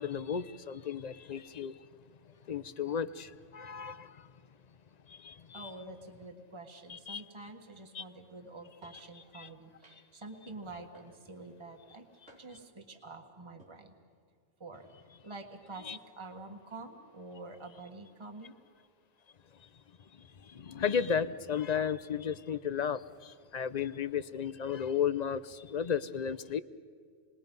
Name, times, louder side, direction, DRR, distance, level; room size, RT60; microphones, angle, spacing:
voice 1, 0.0-1.8 2.5-4.3 5.1-5.7 6.9-7.2 7.9-8.0 9.3-9.5 15.9-16.0 20.1-26.6, left 7 dB, 45° left, 0.6 m, -34 dB
voice 2, 5.5-12.0 12.3-13.9 14.6-18.6, right 2 dB, 25° right, 1.6 m, -47 dB
sound 1, 8.8-9.1 9.8-10.2 10.9-11.4 12.3-12.7 13.4-13.7, right 1 dB, 90° right, 4.6 m, -59 dB
28.0 x 21.0 x 5.4 m
omnidirectional pair, 1.2 m